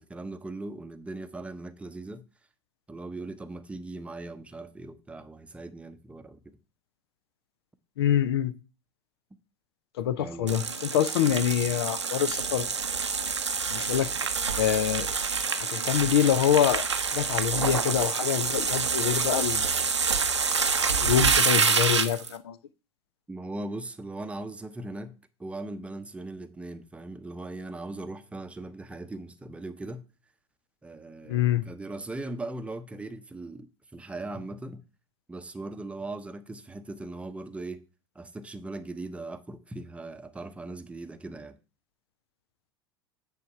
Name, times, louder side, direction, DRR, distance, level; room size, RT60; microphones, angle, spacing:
voice 1, 0.0-2.2 2.9-6.6 10.2-10.6 11.3-11.4 23.3-25.1 25.4-30.1 30.8-34.8 35.3-37.8 38.1-41.6, right 2 dB, 10° right, 0.7 m, -39 dB
voice 2, 8.0-8.5 10.0-12.7 13.7-14.1 14.6-15.1 15.5-16.9 17.1-19.6 21.0-22.6 31.3-31.7, left 10 dB, 65° left, 0.6 m, -25 dB
sound 1, 10.5-22.3, right 5 dB, 85° right, 0.8 m, -27 dB
9.4 x 3.7 x 5.7 m
figure-of-eight pair, 80°, 14 cm